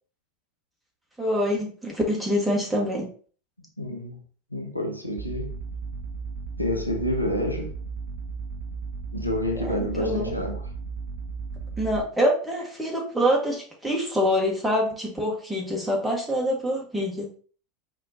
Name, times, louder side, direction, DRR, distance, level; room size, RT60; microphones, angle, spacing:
voice 1, 1.2-3.1 9.6-10.3 11.8-17.3, equal, 5° right, 1.8 m, -25 dB
voice 2, 3.8-4.2 4.5-5.5 6.6-7.7 9.1-10.7, left 1 dB, 90° left, 0.8 m, -28 dB
sound 1, 5.2-12.0, right 5 dB, 55° right, 0.5 m, -35 dB
4.9 x 3.8 x 2.8 m
figure-of-eight pair, 80°, 0 cm